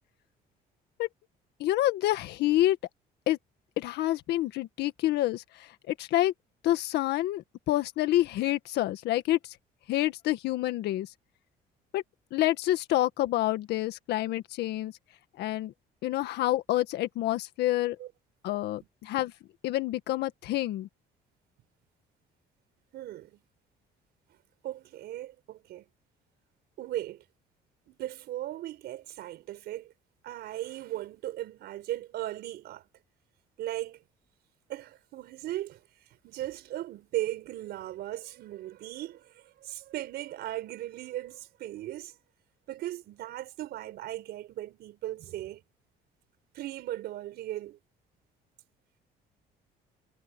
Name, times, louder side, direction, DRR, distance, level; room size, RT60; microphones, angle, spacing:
voice 1, 1.6-2.8 3.3-3.4 3.8-6.3 6.6-9.6 9.9-11.1 11.9-12.0 12.3-14.9 15.4-15.7 16.0-18.0 18.4-19.3 19.6-20.9, left 15 dB, 80° left, 1.8 m, -28 dB
voice 2, 22.9-23.4 24.6-25.8 26.8-27.2 27.9-29.9 30.2-32.9 33.6-34.0 34.7-35.8 36.2-42.2 42.7-45.6 46.5-47.8, right 14 dB, 75° right, 4.9 m, -37 dB
cardioid pair, 110°, 17 cm